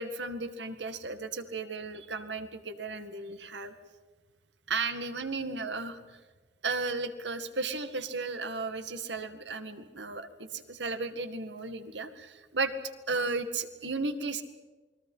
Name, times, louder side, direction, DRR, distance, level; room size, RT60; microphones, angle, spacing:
voice 1, 0.0-3.7 4.7-6.0 6.6-12.7 13.1-14.4, right 3 dB, 85° right, 9 dB, 2.0 m, -34 dB
28.5 x 22.0 x 5.7 m, 1.3 s
head